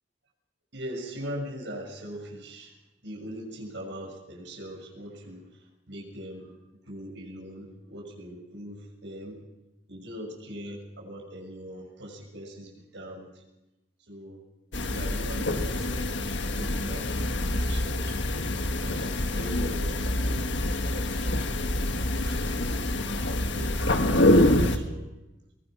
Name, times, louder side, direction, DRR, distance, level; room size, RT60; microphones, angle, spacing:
voice 1, 0.7-2.7 3.0-5.5 5.9-6.6 6.8-9.4 9.9-13.3 14.1-14.4 14.9-18.1 18.7-20.5 20.9-21.5 22.1-23.1 23.6-25.1, equal, 70° right, 0 dB, 6.4 m, -41 dB
sound 1, 14.7-24.8, left 1 dB, 70° left, 1.6 m, -26 dB
23.0 x 20.0 x 6.0 m, 0.98 s
head